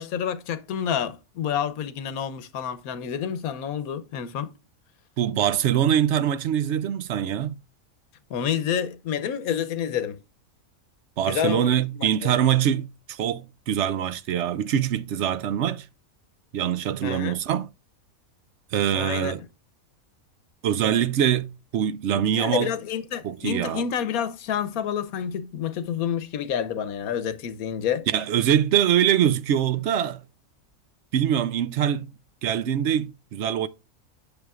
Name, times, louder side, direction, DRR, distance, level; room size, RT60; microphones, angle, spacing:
voice 1, 0.0-4.5 8.3-10.2 11.3-12.3 17.0-17.4 18.9-19.3 22.1-28.1, left 8 dB, 90° left, 1.3 m, -29 dB
voice 2, 5.2-7.5 11.2-15.9 16.5-17.7 18.7-19.4 20.6-22.7 23.2-23.8 28.1-30.2 31.1-32.1 32.4-33.7, right 10 dB, 65° right, 0.8 m, -23 dB
8.0 x 6.9 x 2.3 m
omnidirectional pair, 1.5 m